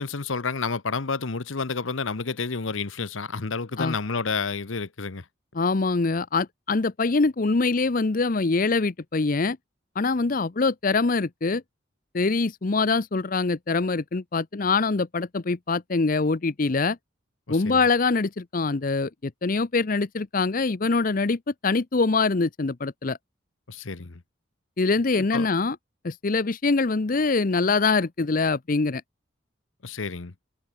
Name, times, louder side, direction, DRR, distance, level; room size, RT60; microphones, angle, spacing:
voice 1, 0.0-5.2 17.5-17.8 23.7-24.2 25.2-25.5 29.8-30.3, left 4 dB, 85° left, 1.1 m, -30 dB
voice 2, 5.5-9.6 10.0-11.6 12.1-17.0 17.5-23.2 24.8-25.8 26.0-29.0, left 3 dB, 45° left, 0.7 m, -24 dB
head